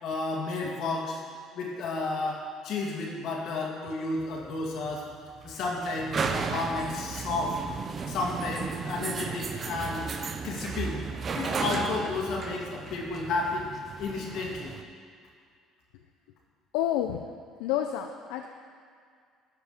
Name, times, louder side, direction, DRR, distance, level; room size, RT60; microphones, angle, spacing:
voice 1, 0.0-1.2 1.5-5.0 5.4-7.6 8.1-10.0 10.4-11.0 11.3-13.7 14.0-14.7, left 3 dB, 65° left, -1 dB, 2.2 m, -32 dB
sound 1, 4.2-14.8, right 5 dB, 40° right, 0.8 m, -35 dB
voice 2, 16.7-17.2 17.6-18.5, left 11 dB, 85° left, 4 dB, 0.5 m, -29 dB
12.5 x 4.8 x 6.6 m, 2.2 s
supercardioid pair, 90°, 0 cm